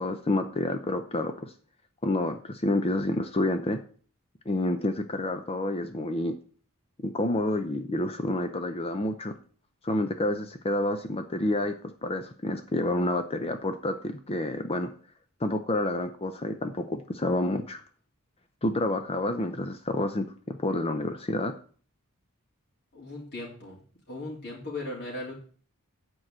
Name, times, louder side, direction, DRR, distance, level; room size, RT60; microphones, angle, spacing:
voice 1, 0.0-1.5 2.0-3.8 4.5-6.3 7.0-9.3 9.8-11.7 12.0-14.9 15.4-17.8 18.6-21.5, left 1 dB, 25° left, 7 dB, 0.6 m, -29 dB
voice 2, 22.9-23.8 24.1-25.3, left 2 dB, 45° left, -4 dB, 3.0 m, -37 dB
9.0 x 4.7 x 7.5 m, 0.44 s
head